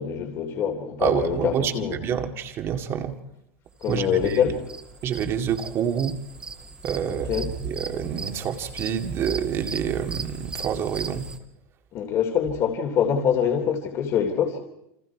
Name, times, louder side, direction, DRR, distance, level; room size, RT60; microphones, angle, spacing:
voice 1, 0.0-2.0 3.8-4.6 7.1-7.5 11.9-14.6, left 8 dB, 40° left, 3 dB, 3.3 m, -25 dB
voice 2, 1.0-3.1 3.9-4.4 5.0-6.2 6.8-11.3, right 8 dB, 35° right, 5 dB, 2.1 m, -27 dB
sound 1, 3.8-11.4, right 4 dB, 15° right, 2.1 m, -39 dB
29.0 x 26.0 x 4.8 m, 0.81 s
supercardioid pair, 130°, 7 cm